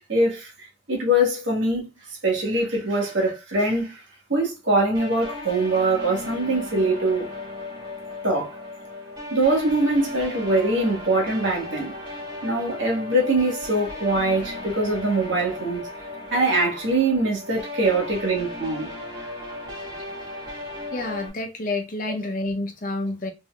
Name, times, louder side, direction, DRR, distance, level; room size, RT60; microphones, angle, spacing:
voice 1, 0.1-0.5 0.9-1.9 2.2-4.0 4.3-7.3 8.2-8.5 9.3-11.9 12.4-15.8 16.3-18.9, right 1 dB, 80° right, 1.4 m, -23 dB
sound 1, 4.9-21.3, left 2 dB, 25° right, 1.5 m, -36 dB
voice 2, 20.9-23.3, left 2 dB, 45° left, 0.6 m, -29 dB
3.6 x 2.6 x 2.3 m
head